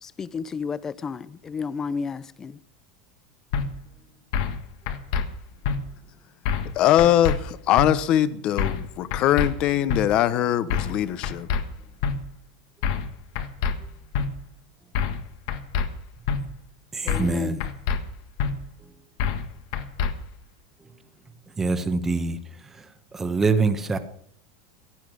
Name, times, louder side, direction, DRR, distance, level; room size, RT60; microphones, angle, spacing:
voice 1, 0.0-2.6 17.0-17.6, left 5 dB, 20° left, 0.6 m, -32 dB
sound 1, 3.5-3.7 4.3-4.6 4.9-5.2 5.6-5.8 6.5-6.7 7.0-7.4 7.8-7.9 8.6-8.9 9.1-9.5 9.9-10.0 10.7-11.0 11.2-11.6 12.0-12.1 12.8-13.1 13.4-13.7 14.1-14.3 15.0-15.2 15.5-15.9 16.3-16.4 17.1-17.3 17.6-18.0 18.4-18.5 19.2-19.5 19.7-20.1, left 7 dB, 65° left, 1.6 m, -25 dB
voice 2, 6.7-11.5, left 12 dB, 40° left, 1.0 m, -21 dB
voice 3, 16.9-17.6 18.8-18.9 21.6-24.0, right 3 dB, 15° right, 1.2 m, -25 dB
16.0 x 11.0 x 6.4 m
supercardioid pair, 150°, 2 cm